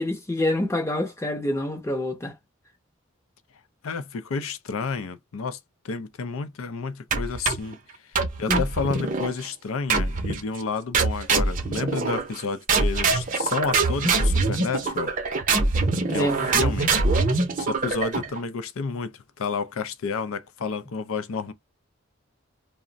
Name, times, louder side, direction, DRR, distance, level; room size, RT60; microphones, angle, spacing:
voice 1, 0.0-2.3 8.5-8.6 16.1-16.7, left 1 dB, 15° left, 0.6 m, -26 dB
voice 2, 3.8-5.6 5.8-7.8 8.0-15.1 16.1-17.0 17.6-21.5, left 5 dB, 80° left, 0.5 m, -30 dB
sound 1, 7.1-7.7 8.1-9.3 9.9-10.4 10.9-12.4 12.7-18.4, right 3 dB, 40° right, 0.5 m, -24 dB
2.4 x 2.1 x 3.8 m
head